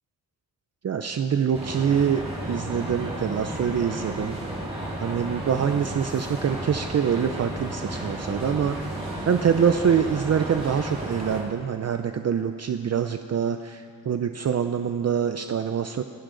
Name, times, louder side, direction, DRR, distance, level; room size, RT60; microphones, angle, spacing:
voice 1, 0.8-2.2 2.5-4.4 5.0-16.0, right 7 dB, 45° right, 8 dB, 0.5 m, -25 dB
sound 1, 1.5-11.4, right 1 dB, 15° right, 4.9 m, -33 dB
29.0 x 11.0 x 3.9 m, 2.2 s
wide cardioid pair, 160°, 36 cm